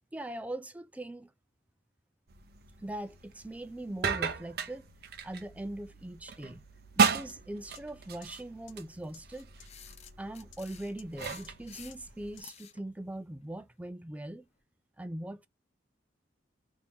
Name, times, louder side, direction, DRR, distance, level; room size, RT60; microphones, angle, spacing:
voice 1, 0.1-1.3 2.8-4.9 5.2-6.6 7.0-9.5 10.2-14.5 15.0-15.5, right 1 dB, 10° right, 0.3 m, -41 dB
sound 1, 2.3-12.4, right 5 dB, 55° right, 0.6 m, -35 dB
sound 2, 7.3-7.4 7.8-7.9 8.2-8.3 8.7-8.8 9.1-9.2 9.6-9.7 10.1-10.2 10.5-10.6 11.0-11.1 11.4-11.5 11.9-12.0 12.4-12.5, left 11 dB, 85° left, 0.6 m, -53 dB
sound 3, 9.4-12.8, left 8 dB, 35° left, 0.6 m, -51 dB
2.9 x 2.6 x 3.4 m
head